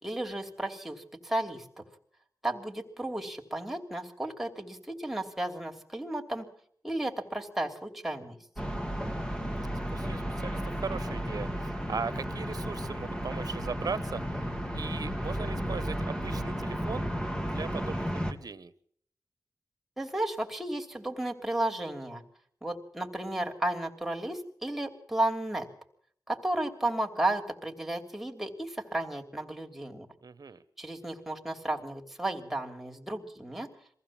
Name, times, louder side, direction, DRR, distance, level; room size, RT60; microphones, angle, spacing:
voice 1, 0.0-1.8 2.4-6.5 6.8-8.4 20.0-22.2 22.6-25.7 26.3-30.1 30.8-33.7, right 1 dB, 5° right, 2 dB, 3.0 m, -33 dB
sound 1, 8.6-18.3, equal, 10° left, 2.3 m, -33 dB
voice 2, 9.1-9.7 9.9-14.5 14.7-17.1 17.4-18.7 30.2-30.6, right 5 dB, 70° right, 15 dB, 1.2 m, -39 dB
23.0 x 15.5 x 7.4 m, 0.63 s
wide cardioid pair, 75°, 7 cm